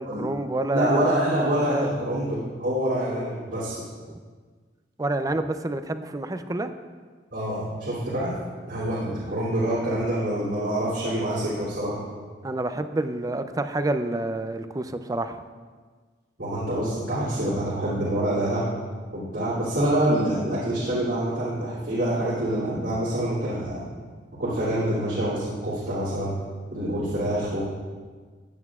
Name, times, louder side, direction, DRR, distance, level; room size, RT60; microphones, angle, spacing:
voice 1, 0.0-0.9 1.5-1.9 4.1-4.2 5.0-6.7 12.4-15.4, right 2 dB, 20° right, 9 dB, 0.5 m, -28 dB
voice 2, 0.7-3.8 7.3-8.3 8.7-12.0 16.4-18.6 19.1-23.8 24.4-26.3 26.7-27.7, right 1 dB, 85° right, -11 dB, 2.9 m, -26 dB
15.0 x 9.4 x 2.4 m, 1.5 s
head